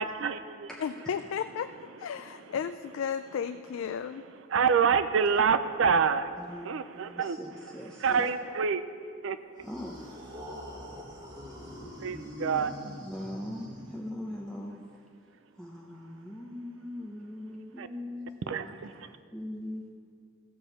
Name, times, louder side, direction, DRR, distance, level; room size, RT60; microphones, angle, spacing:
voice 1, 0.0-0.7 4.5-6.3 6.6-7.4 8.0-8.8 9.2-9.4 12.0-12.7 17.8-17.9 18.5-18.9, right 6 dB, 70° right, 11 dB, 0.4 m, -26 dB
voice 2, 0.8-1.7 2.0-4.2, left 7 dB, 75° left, 10 dB, 0.3 m, -34 dB
voice 3, 6.4-6.7 7.2-8.3 9.6-10.0 11.6-11.7 12.8-14.9 15.6-19.9, left 1 dB, 5° left, -2 dB, 0.6 m, -41 dB
sound 1, 9.6-14.4, left 1 dB, 20° right, 1.4 m, -44 dB
14.5 x 5.0 x 6.9 m, 2.2 s
head